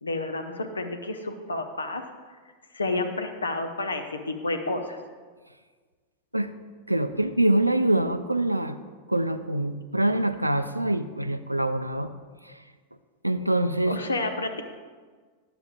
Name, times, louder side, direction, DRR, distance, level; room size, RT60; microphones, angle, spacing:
voice 1, 0.0-2.1 2.7-5.0 13.9-14.6, left 2 dB, 75° left, 5 dB, 0.5 m, -30 dB
voice 2, 6.9-8.8 9.1-12.1 12.4-12.6 13.2-14.0, right 1 dB, 85° right, 10 dB, 0.3 m, -25 dB
10.5 x 6.8 x 2.5 m, 1.5 s
figure-of-eight pair, 90°, 0 cm